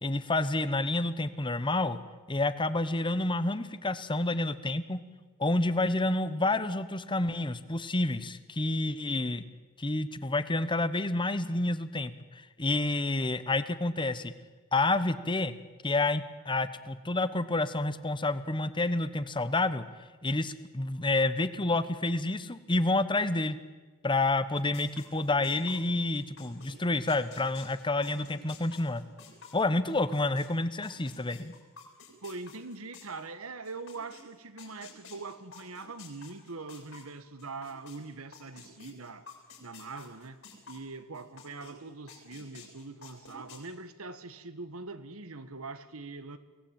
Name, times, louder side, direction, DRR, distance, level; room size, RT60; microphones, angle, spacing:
voice 1, 0.0-2.0 2.3-5.0 5.4-9.4 9.8-12.1 12.6-14.3 14.7-15.5 15.8-19.8 20.2-23.6 24.0-29.0 29.5-31.5, left 2 dB, 25° left, 14 dB, 1.1 m, -29 dB
sound 1, 24.6-30.5 30.8-38.0 38.3-41.7 42.1-43.6, left 6 dB, 65° left, 7.4 m, -51 dB
voice 2, 32.2-39.3 39.6-40.4 40.7-46.4, right 3 dB, 85° right, 12 dB, 1.6 m, -42 dB
23.5 x 18.0 x 9.0 m, 1.3 s
head